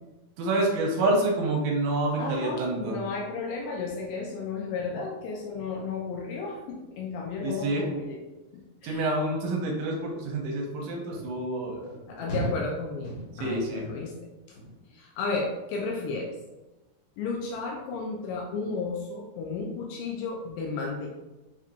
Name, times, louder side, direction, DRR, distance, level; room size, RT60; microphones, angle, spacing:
voice 1, 0.4-3.0 7.4-7.8 8.8-11.9 12.3-12.5 13.4-13.8, right 2 dB, 80° right, -1 dB, 2.9 m, -28 dB
voice 2, 2.2-8.2 8.5-9.1 12.1-14.1 14.5-14.6 14.9-16.3 17.2-21.2, left 4 dB, 80° left, -1 dB, 2.6 m, -33 dB
sound 1, 11.1-11.3 11.8-12.0 12.3-12.7 13.0-13.5 13.8-14.2 14.5-14.9 15.3-15.7 16.0-16.2, right 1 dB, 65° left, 2.9 m, -36 dB
6.9 x 2.9 x 2.5 m, 1.1 s
omnidirectional pair, 5.4 m